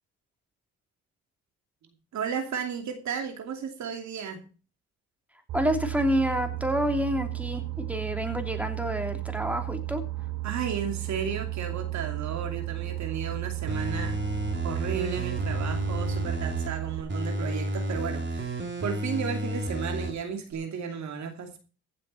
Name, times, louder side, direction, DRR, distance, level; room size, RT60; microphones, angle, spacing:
voice 1, 2.1-4.4 10.4-14.2 14.6-21.6, right 7 dB, 70° right, 2.7 m, -34 dB
voice 2, 5.5-10.0, equal, 5° right, 3.0 m, -28 dB
Boat Water vehicle, 5.5-17.0, right 17 dB, 85° right, 6.6 m, -34 dB
sound 1, 13.7-16.7 17.1-20.1 20.5-20.6, right 1 dB, 35° right, 4.0 m, -31 dB
15.5 x 7.6 x 5.6 m
cardioid pair, 90°, 30 cm